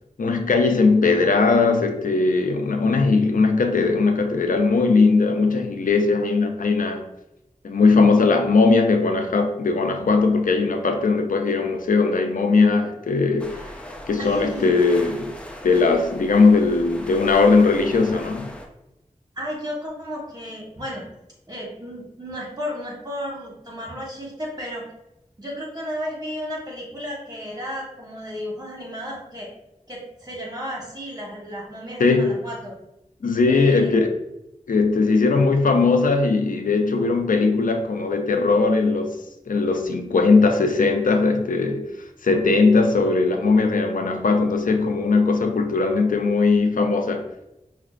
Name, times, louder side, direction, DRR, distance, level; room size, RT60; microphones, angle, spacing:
voice 1, 0.2-7.1 7.6-13.6 14.1-15.3 15.6-18.5 32.0-32.3 33.2-34.1 34.7-39.2 39.5-41.9 42.2-47.3, left 4 dB, 85° left, 5 dB, 0.4 m, -19 dB
sound 1, 13.4-18.7, equal, 10° left, 0.5 m, -39 dB
voice 2, 14.2-14.8 19.4-21.1 21.5-24.8 25.4-29.5 29.9-32.7 33.5-34.0, equal, 30° right, -3 dB, 1.3 m, -33 dB
5.6 x 2.2 x 2.4 m, 0.90 s
wide cardioid pair, 45°, 14 cm